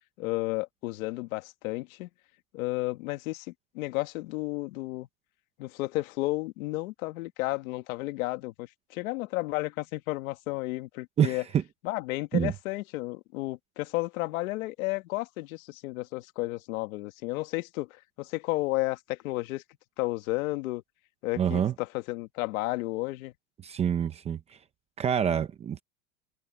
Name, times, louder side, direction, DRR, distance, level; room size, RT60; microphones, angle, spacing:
voice 1, 0.2-2.1 2.5-3.5 3.7-5.1 5.6-11.4 11.8-17.9 18.2-19.6 20.0-20.8 21.2-23.3, left 20 dB, 75° left, 1.8 m, -32 dB
voice 2, 11.2-11.6 12.3-12.5 21.4-21.7 23.6-24.4 25.0-25.8, right 8 dB, 15° right, 0.7 m, -26 dB
supercardioid pair, 175°, 42 cm